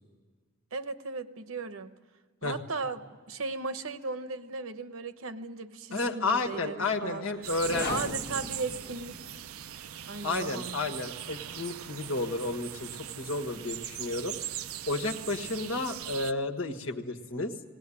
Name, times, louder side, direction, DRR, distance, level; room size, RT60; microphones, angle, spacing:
voice 1, 0.7-1.9 2.4-3.0 3.3-7.3 7.7-9.4 10.0-10.8, right 3 dB, 75° right, 10 dB, 1.0 m, -36 dB
voice 2, 5.9-8.1 10.2-14.4 14.9-17.5, left 3 dB, 70° left, 3 dB, 1.5 m, -32 dB
sound 1, 7.4-16.3, right 11 dB, 90° right, 0.6 m, -40 dB
sound 2, 7.5-9.6, left 4 dB, 50° left, 1.0 m, -39 dB
19.0 x 18.5 x 10.0 m, 1.5 s
head